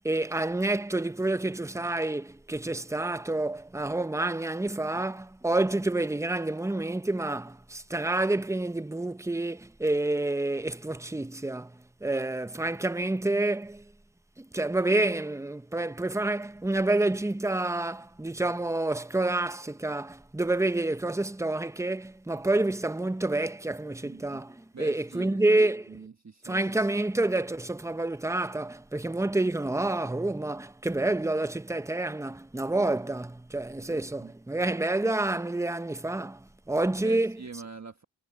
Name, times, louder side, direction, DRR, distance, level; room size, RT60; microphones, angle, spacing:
voice 1, 0.0-13.8 14.4-26.0 26.4-37.4, right 2 dB, 5° right, 0.7 m, -28 dB
voice 2, 24.0-24.4 24.7-26.7 33.9-34.3 37.0-38.0, right 5 dB, 35° right, 1.3 m, -45 dB
cardioid pair, 65°, 46 cm